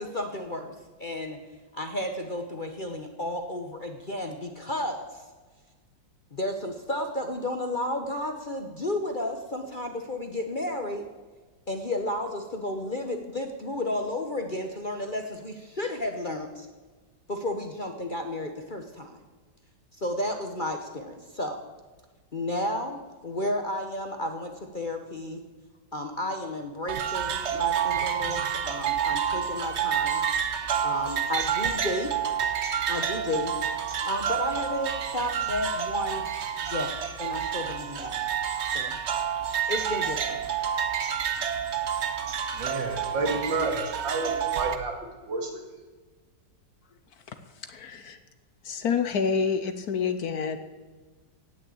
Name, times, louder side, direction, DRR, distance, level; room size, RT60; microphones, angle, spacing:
voice 1, 0.0-1.4 1.7-5.2 6.3-11.1 11.7-16.7 17.3-19.2 20.0-21.6 22.3-25.4 25.9-30.2 30.8-32.1 32.9-33.5 34.0-36.3 36.6-38.2 38.7-39.0 39.7-40.4, left 1 dB, 35° left, 5 dB, 0.9 m, -32 dB
sound 1, 26.9-44.8, right 8 dB, 50° right, 0.9 m, -29 dB
voice 2, 42.5-44.9 45.3-45.6, right 3 dB, 80° right, 2 dB, 2.9 m, -30 dB
voice 3, 47.6-48.2 48.6-50.6, left 6 dB, 60° left, 10 dB, 1.3 m, -28 dB
17.0 x 6.6 x 8.5 m, 1.4 s
omnidirectional pair, 2.0 m